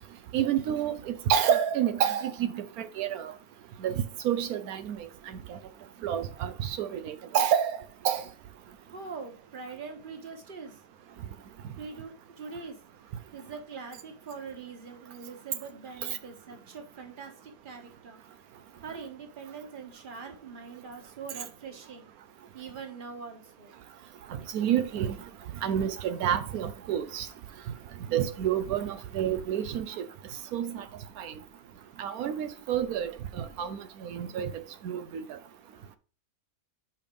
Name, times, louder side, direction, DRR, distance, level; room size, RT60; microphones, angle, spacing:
voice 1, 0.3-3.3 3.8-3.9 4.2-5.6 6.0-8.2 24.5-25.2 25.6-27.3 28.1-30.0 30.5-30.8 31.2-31.3 32.0-35.4, right 9 dB, 90° right, 1.2 m, -29 dB
voice 2, 8.9-10.8 11.8-12.8 13.3-18.2 18.8-22.1 22.5-23.7, right 5 dB, 35° right, 1.4 m, -43 dB
5.6 x 5.1 x 5.2 m
omnidirectional pair, 1.5 m